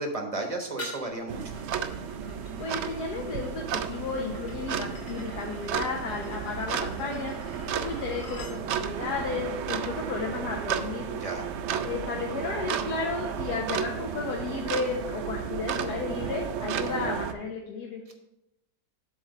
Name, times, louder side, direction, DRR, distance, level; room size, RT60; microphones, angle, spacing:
voice 1, 0.0-1.6 11.2-11.5, right 2 dB, 25° right, 3 dB, 0.9 m, -33 dB
sound 1, 0.8-8.6, left 2 dB, 45° left, 1.3 m, -46 dB
sound 2, 1.3-17.3, right 8 dB, 70° right, 0.6 m, -33 dB
voice 2, 2.6-7.3 7.7-11.1 11.8-18.0, left 4 dB, 80° left, -1 dB, 1.4 m, -33 dB
7.7 x 3.6 x 6.5 m, 0.86 s
omnidirectional pair, 1.7 m